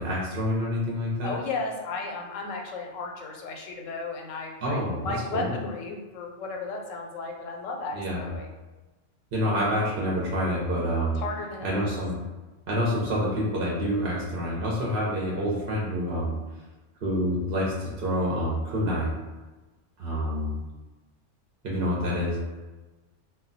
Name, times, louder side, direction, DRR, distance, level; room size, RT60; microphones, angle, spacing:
voice 1, 0.0-1.3 4.6-5.5 7.9-8.3 9.3-11.2 11.6-12.2 12.7-16.4 17.0-19.1 20.0-20.6 21.6-22.4, equal, 55° right, -4 dB, 0.7 m, -27 dB
voice 2, 1.2-8.5 11.2-11.9, left 3 dB, 85° left, 1 dB, 0.9 m, -34 dB
2.2 x 2.2 x 3.8 m, 1.2 s
omnidirectional pair, 1.3 m